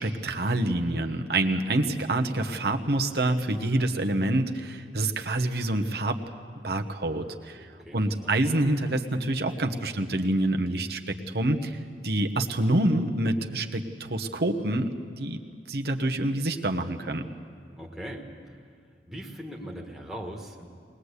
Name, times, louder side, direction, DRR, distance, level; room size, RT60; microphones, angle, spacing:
voice 1, 0.0-6.2 6.6-7.6 7.9-11.8 12.0-15.4 15.7-17.3, right 1 dB, 60° right, 4 dB, 1.2 m, -27 dB
voice 2, 7.8-8.4 17.8-18.3 19.1-20.7, equal, ahead, -2 dB, 1.6 m, -39 dB
21.5 x 20.0 x 8.3 m, 2.3 s
head